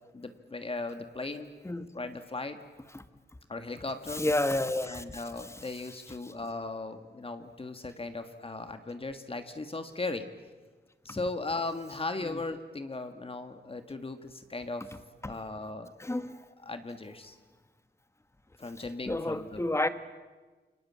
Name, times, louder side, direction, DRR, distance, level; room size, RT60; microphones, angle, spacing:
voice 1, 0.1-1.5 1.9-2.6 3.5-4.2 4.9-10.3 11.0-14.9 15.2-15.9 16.6-17.4 18.6-19.6, left 3 dB, 30° left, 8 dB, 1.6 m, -37 dB
voice 2, 4.1-5.2 12.2-12.4 15.2-15.3 16.0-16.3 19.1-19.9, left 1 dB, 15° left, 11 dB, 1.5 m, -30 dB
28.5 x 24.0 x 8.6 m, 1.3 s
wide cardioid pair, 135°, 18 cm